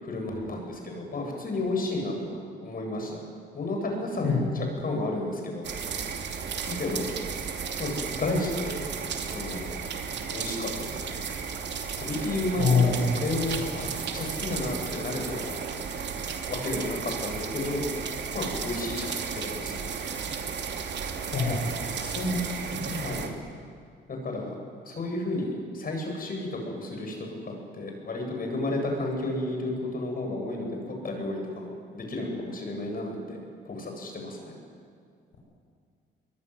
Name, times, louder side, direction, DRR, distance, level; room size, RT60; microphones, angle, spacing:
voice 1, 0.0-3.2 3.5-5.6 6.7-7.1 7.8-8.8 9.3-9.8 10.3-11.2 12.0-15.8 16.5-17.8 18.3-19.9 21.5-21.6 22.9-23.3 24.1-24.6 24.8-33.4 33.6-34.6, left 2 dB, 45° left, 2 dB, 8.0 m, -32 dB
sound 1, 5.6-23.3, right 6 dB, 60° right, 2.8 m, -34 dB
voice 2, 12.6-13.0 21.3-21.6 21.9-22.4 22.7-23.0, left 5 dB, 65° left, -4 dB, 6.5 m, -25 dB
23.0 x 23.0 x 9.8 m, 2.2 s
cardioid pair, 90°, 20 cm